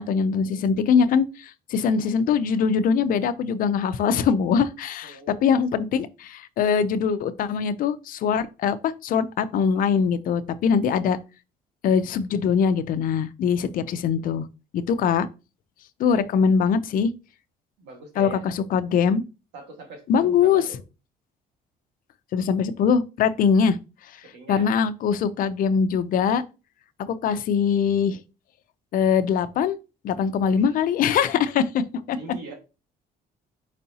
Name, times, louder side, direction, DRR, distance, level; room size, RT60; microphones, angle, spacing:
voice 1, 0.0-11.2 11.8-14.5 14.7-15.3 16.0-17.1 18.2-19.2 20.1-20.6 22.3-23.8 24.5-26.4 27.0-28.2 28.9-29.8 30.0-32.2, left 6 dB, 55° left, 0.5 m, -22 dB
voice 2, 5.0-5.6 9.7-9.8 16.1-16.4 17.8-18.4 19.5-20.8 24.3-24.7 30.4-30.7 32.2-32.5, right 3 dB, 90° right, 1.7 m, -42 dB
4.6 x 4.1 x 2.8 m
cardioid pair, 110°, 17 cm